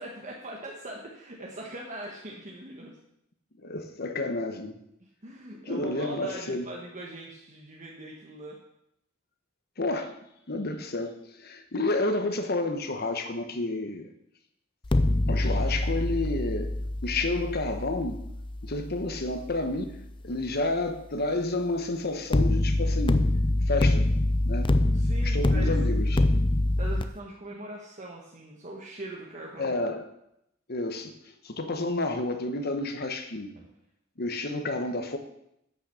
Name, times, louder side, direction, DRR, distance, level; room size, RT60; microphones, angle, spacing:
voice 1, 0.0-3.0 5.0-8.6 24.9-25.8 26.8-29.8, right 1 dB, 40° right, -2 dB, 1.3 m, -41 dB
voice 2, 3.6-4.8 5.7-6.7 9.8-10.1 10.5-14.1 15.3-16.7 17.0-18.2 18.6-19.9 20.2-23.3 23.7-24.1 24.4-24.7 25.2-26.2 29.6-30.1 30.7-33.5 34.2-35.2, left 2 dB, 55° left, 7 dB, 1.2 m, -30 dB
sound 1, 14.8-19.9 22.3-27.0, left 1 dB, 25° left, 0.5 m, -25 dB
11.0 x 6.1 x 6.9 m, 0.80 s
head